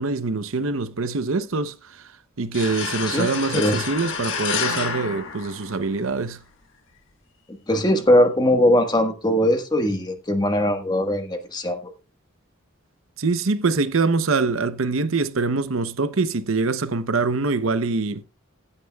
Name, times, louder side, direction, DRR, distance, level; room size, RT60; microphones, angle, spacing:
voice 1, 0.0-2.1 2.4-6.4 13.2-18.2, right 3 dB, 70° right, 0.8 m, -24 dB
sound 1, 2.5-6.1, left 6 dB, 60° left, 1.6 m, -29 dB
voice 2, 7.7-11.8, left 1 dB, 20° left, 1.4 m, -20 dB
15.5 x 9.8 x 2.3 m
head